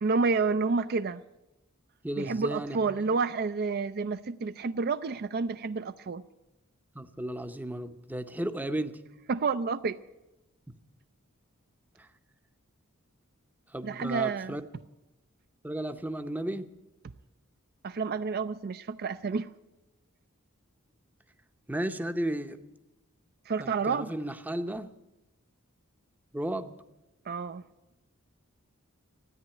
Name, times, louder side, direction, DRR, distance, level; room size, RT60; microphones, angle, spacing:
voice 1, 0.0-1.2 2.2-6.2 9.3-10.0 13.8-14.6 17.8-19.5 23.5-24.1 27.3-27.6, right 4 dB, 45° right, 0.4 m, -29 dB
voice 2, 2.0-3.2 6.9-9.0 12.0-12.1 13.7-14.6 15.6-16.7 21.7-22.6 23.6-24.9 26.3-26.7, right 1 dB, 10° right, 0.7 m, -34 dB
13.5 x 9.4 x 9.8 m
head